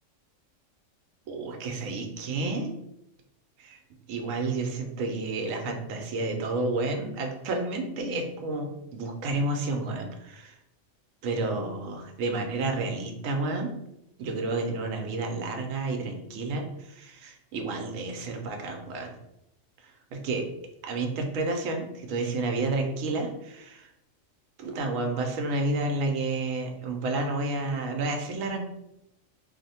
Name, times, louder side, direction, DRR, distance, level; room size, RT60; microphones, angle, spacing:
voice 1, 1.3-2.7 4.1-10.5 11.2-13.7 14.2-19.2 19.8-20.5 20.8-23.9 24.6-28.6, right 2 dB, 85° right, 3 dB, 1.0 m, -30 dB
2.7 x 2.1 x 4.0 m, 0.84 s
omnidirectional pair, 1.3 m